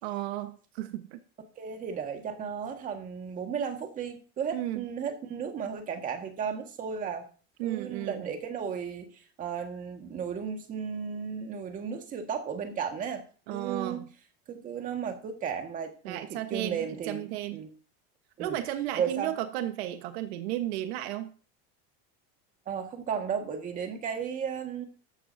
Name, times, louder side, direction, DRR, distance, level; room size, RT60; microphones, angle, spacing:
voice 1, 0.0-1.2 4.5-4.8 7.6-8.2 13.5-14.0 16.0-17.6 18.4-21.3, right 13 dB, 65° right, 7 dB, 1.4 m, -34 dB
voice 2, 1.6-7.3 7.6-13.2 13.5-14.1 14.5-17.7 18.4-18.6 19.0-19.3 22.7-24.8, right 7 dB, 25° right, 5 dB, 1.8 m, -34 dB
14.0 x 12.5 x 2.8 m, 0.38 s
cardioid pair, 175°, 33 cm